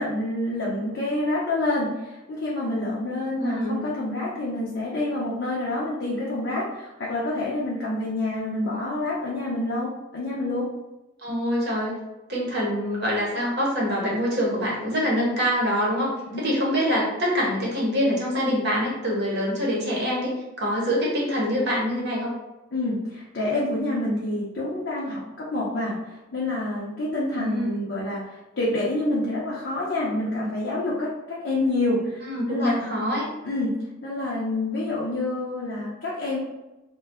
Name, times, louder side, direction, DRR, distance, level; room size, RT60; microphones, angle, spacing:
voice 1, 0.0-10.7 16.3-16.4 22.7-32.8 33.4-36.4, left 2 dB, 55° left, -6 dB, 0.6 m, -27 dB
voice 2, 3.4-3.8 11.2-11.9 12.3-22.3 27.4-27.8 32.2-33.3, equal, 50° right, -3 dB, 0.8 m, -25 dB
2.6 x 2.2 x 3.4 m, 1.0 s
head